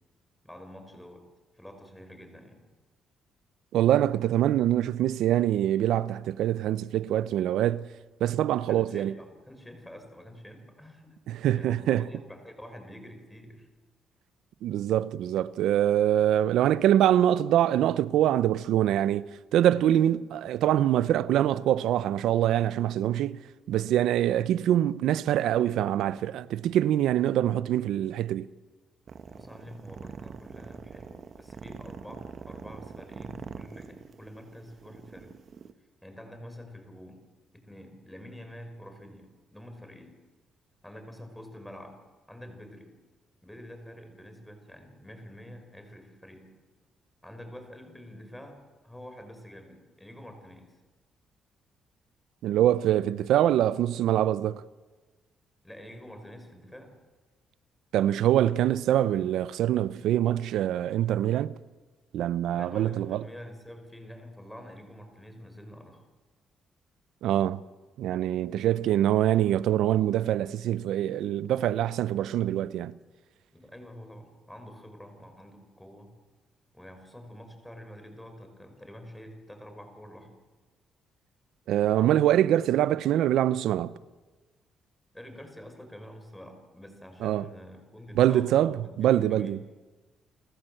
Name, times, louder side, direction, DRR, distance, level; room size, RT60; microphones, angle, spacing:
voice 1, 0.4-1.2 1.5-2.7 8.6-13.7 29.3-35.3 36.0-37.2 37.5-40.1 40.8-42.0 42.3-43.0 43.4-46.5 47.2-50.7 55.6-56.9 62.5-66.0 73.5-76.1 76.7-80.3 85.1-89.6, equal, 5° left, 5.4 m, -47 dB
voice 2, 3.7-7.9 8.2-9.1 11.3-12.1 14.6-19.2 19.5-23.4 23.7-28.5 52.4-54.6 57.9-61.6 62.1-63.2 67.2-67.6 68.0-72.9 81.7-83.9 87.2-87.5 88.1-89.6, right 12 dB, 80° right, 0.6 m, -24 dB
sound 1, 29.1-35.7, right 6 dB, 50° right, 1.2 m, -44 dB
29.5 x 14.5 x 7.8 m
cardioid pair, 90°, 0 cm